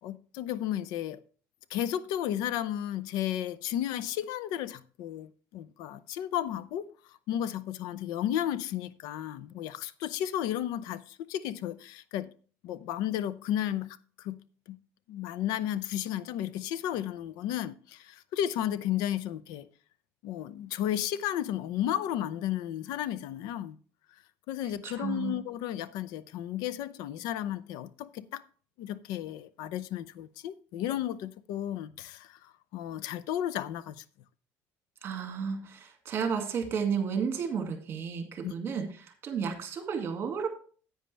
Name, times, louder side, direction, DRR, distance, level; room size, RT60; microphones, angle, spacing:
voice 1, 0.0-1.2 1.7-6.9 7.3-12.3 12.6-14.8 15.1-19.7 20.2-23.8 24.5-28.4 28.8-34.0 38.4-38.5, left 11 dB, 75° left, 0.6 m, -33 dB
voice 2, 24.8-25.4 35.0-40.5, right 6 dB, 35° right, 2.2 m, -32 dB
10.5 x 8.9 x 3.4 m
cardioid pair, 155°, 7 cm